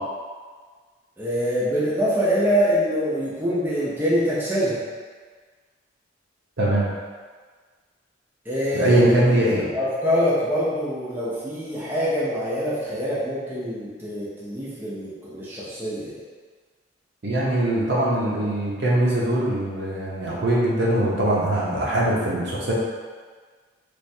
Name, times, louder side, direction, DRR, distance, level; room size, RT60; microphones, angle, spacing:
voice 1, 1.2-4.8 8.5-9.0 9.6-16.2, equal, 10° right, -9 dB, 0.5 m, -24 dB
voice 2, 8.7-9.6 17.2-22.7, right 1 dB, 60° right, -5 dB, 0.7 m, -21 dB
3.2 x 2.4 x 2.6 m, 1.5 s
head